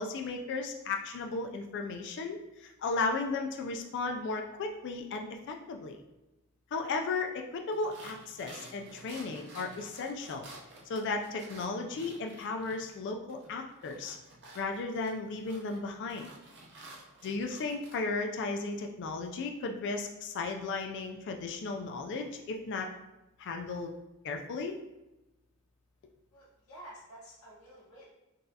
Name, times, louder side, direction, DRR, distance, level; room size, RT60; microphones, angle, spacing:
voice 1, 0.0-6.0 6.7-10.5 10.9-14.2 14.6-16.3 17.2-22.9 23.4-23.9 24.2-24.7, left 3 dB, 55° left, 3 dB, 0.3 m, -35 dB
sound 1, 7.7-13.0 13.3-18.0, right 2 dB, 55° right, 0.6 m, -52 dB
voice 2, 26.3-28.1, right 1 dB, 80° left, -6 dB, 1.0 m, -51 dB
3.9 x 2.4 x 2.6 m, 0.97 s
head